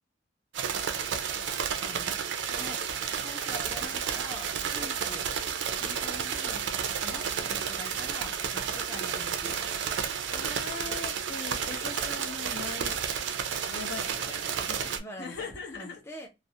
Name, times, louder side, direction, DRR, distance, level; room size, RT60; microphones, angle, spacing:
sound 1, 0.5-15.0, right 7 dB, 65° right, 0.4 m, -31 dB
voice 1, 3.2-4.5 4.8-5.3 5.8-6.6 7.0-9.6 9.8-9.9 14.7-16.3, left 1 dB, 15° left, 0.3 m, -45 dB
voice 2, 10.3-13.0 13.7-14.9 15.2-16.0, left 4 dB, 60° left, 0.7 m, -40 dB
2.4 x 2.0 x 2.6 m
head